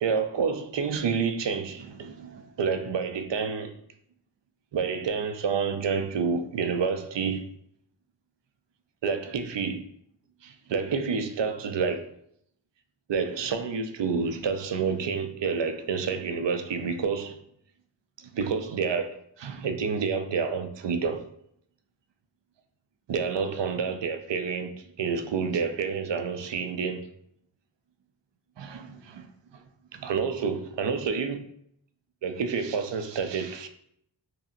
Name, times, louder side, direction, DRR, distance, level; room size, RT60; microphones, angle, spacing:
voice 1, 0.0-3.7 4.7-7.4 9.0-9.8 10.4-12.1 13.1-17.4 18.2-21.2 23.1-27.0 28.6-29.3 29.5-29.6 29.9-31.4 32.2-33.7, right 5 dB, 70° right, 0.5 m, -29 dB
5.6 x 2.0 x 2.5 m
cardioid pair, 40°, 46 cm